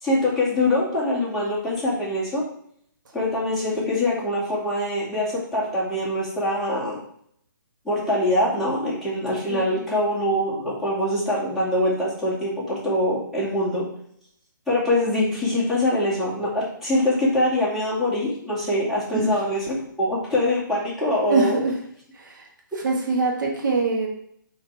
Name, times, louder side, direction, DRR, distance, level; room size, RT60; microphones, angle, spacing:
voice 1, 0.0-2.4 3.1-7.0 7.8-13.9 14.7-21.6 22.7-22.8, left 1 dB, ahead, -9 dB, 2.4 m, -24 dB
voice 2, 9.5-10.0 19.1-19.3 21.3-21.7 22.1-22.4 22.8-24.1, right 3 dB, 65° right, 0 dB, 1.7 m, -24 dB
5.9 x 4.4 x 4.8 m, 0.67 s
hypercardioid pair, 150°, 11 cm